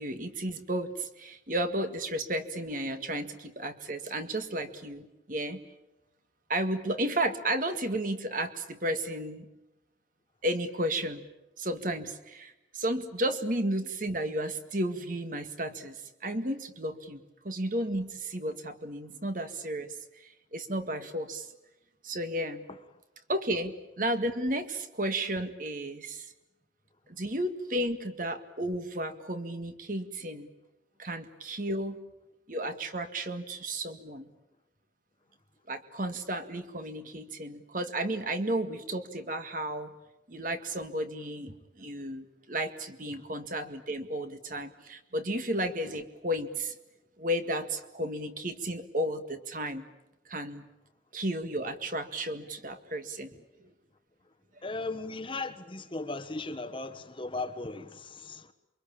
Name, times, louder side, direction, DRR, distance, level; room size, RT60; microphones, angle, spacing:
voice 1, 0.0-5.6 6.5-9.5 10.4-11.2 11.6-19.9 20.2-21.5 22.0-22.7 23.3-26.3 27.1-30.5 31.0-32.0 32.5-34.3 35.7-39.9 40.3-46.7 47.2-49.9 50.3-50.6 51.1-53.3, right 1 dB, 45° right, 2.0 m, -33 dB
voice 2, 54.6-58.5, left 3 dB, 30° left, 1.2 m, -37 dB
28.0 x 24.0 x 8.7 m
head